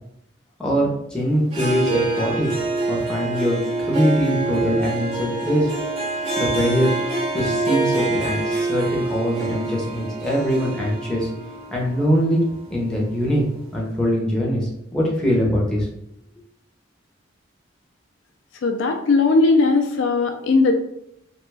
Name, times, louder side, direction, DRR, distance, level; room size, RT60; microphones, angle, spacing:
voice 1, 0.6-2.5 2.9-5.7 6.4-6.9 7.3-11.3 11.7-13.4 13.7-15.9, equal, 5° left, -4 dB, 0.7 m, -22 dB
Harp, 1.5-13.3, right 2 dB, 30° right, 0.6 m, -26 dB
voice 2, 18.6-20.7, left 3 dB, 70° left, 4 dB, 0.4 m, -18 dB
2.9 x 2.2 x 3.2 m, 0.78 s
head